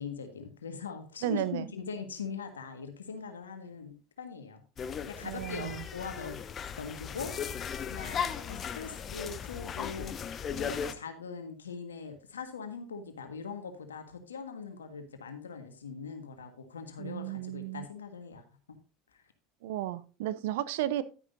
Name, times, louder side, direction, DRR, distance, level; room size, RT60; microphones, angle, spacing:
voice 1, 0.0-4.6 5.1-6.4 6.8-18.4 19.1-19.2, left 5 dB, 90° left, 7 dB, 1.5 m, -41 dB
voice 2, 1.2-1.7 5.2-5.9 17.0-17.9 19.6-21.0, right 13 dB, 70° right, 16 dB, 0.6 m, -33 dB
sound 1, 4.8-10.9, left 7 dB, 35° left, 0.8 m, -37 dB
11.0 x 10.0 x 2.6 m, 0.36 s
hypercardioid pair, 80°, 0 cm